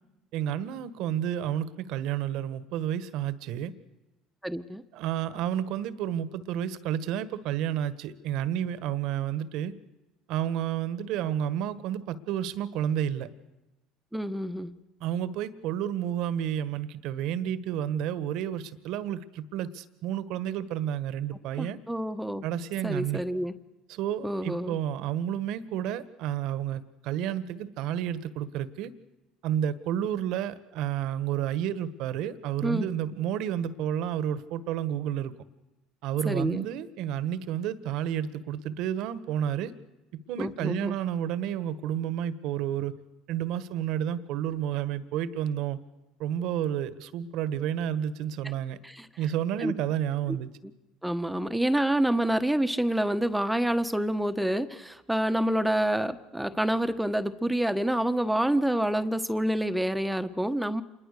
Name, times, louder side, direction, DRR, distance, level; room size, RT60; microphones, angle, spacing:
voice 1, 0.3-3.7 4.9-9.7 10.3-13.3 15.0-21.8 22.4-23.2 23.9-28.9 29.4-35.3 36.0-39.7 40.1-42.9 43.3-45.8 46.2-48.8 49.2-50.5, right 10 dB, 70° right, 14 dB, 1.5 m, -30 dB
voice 2, 4.4-4.8 14.1-14.7 21.6-22.4 22.8-23.5 24.2-24.8 32.6-32.8 36.2-36.7 40.4-41.0 48.8-49.1 49.6-49.7 51.0-60.8, right 1 dB, 5° right, 9 dB, 1.3 m, -27 dB
27.0 x 21.5 x 6.8 m, 1.0 s
supercardioid pair, 85°, 0 cm